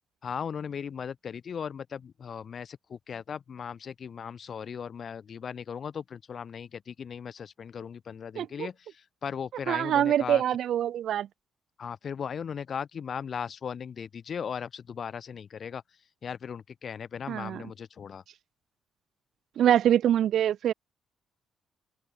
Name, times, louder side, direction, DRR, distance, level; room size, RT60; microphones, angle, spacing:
voice 1, 0.2-10.4 11.8-15.8 16.2-18.2, left 7 dB, 50° left, 2.9 m, -37 dB
voice 2, 8.3-8.7 9.7-11.3 17.3-17.6 19.6-20.7, right 10 dB, 70° right, 1.6 m, -24 dB
open air
cardioid pair, 90°, 0 cm